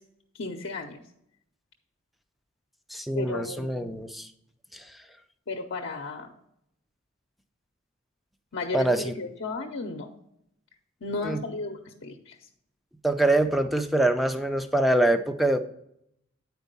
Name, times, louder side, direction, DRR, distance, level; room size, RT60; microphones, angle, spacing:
voice 1, 0.4-1.0 3.1-3.9 5.5-6.3 8.5-10.1 11.0-12.3, left 3 dB, 65° left, 1 dB, 0.7 m, -34 dB
voice 2, 2.9-4.3 4.7-4.8 8.7-9.2 11.2-11.4 13.0-15.6, right 1 dB, ahead, 8 dB, 0.5 m, -24 dB
8.9 x 4.6 x 5.3 m, 0.75 s
head